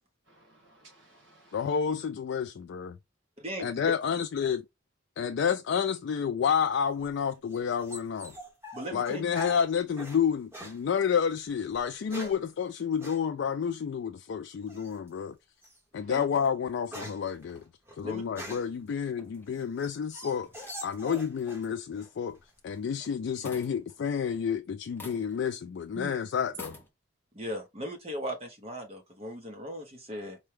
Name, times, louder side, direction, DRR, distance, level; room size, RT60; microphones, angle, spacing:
voice 1, 0.2-1.8 9.0-9.1 15.9-16.2 25.9-26.3 27.4-27.7, right 3 dB, 65° right, 1.7 m, -50 dB
voice 2, 1.5-2.9 3.6-4.6 5.2-8.3 8.9-15.4 15.9-17.6 18.0-20.5 20.8-22.4 22.6-26.8, left 7 dB, 65° left, 0.3 m, -30 dB
voice 3, 3.4-3.9 8.7-9.2 12.2-12.3 16.1-16.2 18.0-18.2 27.3-30.4, equal, 30° right, 0.9 m, -38 dB
sound 1, 6.9-10.2 10.5-10.8 11.7-12.5 13.0-13.2 14.7-15.1 15.6-15.8 16.2-18.8 19.3-21.7 22.0-22.6, equal, 10° right, 1.2 m, -44 dB
sound 2, 19.2-19.9 20.4-23.1 23.4-24.5 24.9-25.5 25.8-25.9 26.5-26.9, left 2 dB, 10° left, 0.7 m, -48 dB
4.4 x 2.2 x 3.1 m
head